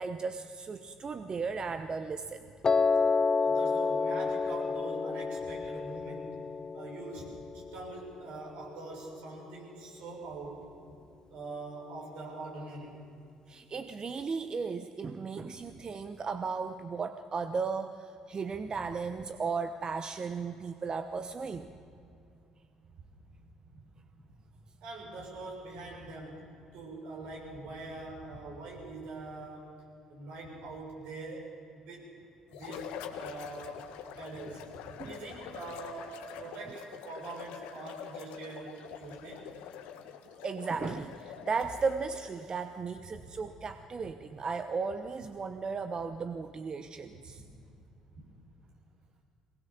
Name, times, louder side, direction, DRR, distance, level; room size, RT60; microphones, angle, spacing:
voice 1, 0.0-2.4 13.5-21.7 35.0-35.2 40.4-47.4, right 5 dB, 40° right, 9 dB, 1.0 m, -35 dB
Piano, 2.6-8.8, left 4 dB, 35° left, 0.5 m, -30 dB
voice 2, 3.4-6.4 6.7-10.7 11.3-13.0 23.1-23.2 24.8-29.7 30.1-32.1 32.5-33.9 34.2-39.5 43.1-43.3 47.1-47.2, right 3 dB, 70° right, -2 dB, 6.7 m, -44 dB
sound 1, 32.5-42.4, left 9 dB, 70° left, 1.5 m, -45 dB
22.0 x 20.0 x 7.2 m, 2.6 s
hypercardioid pair, 55°, 2 cm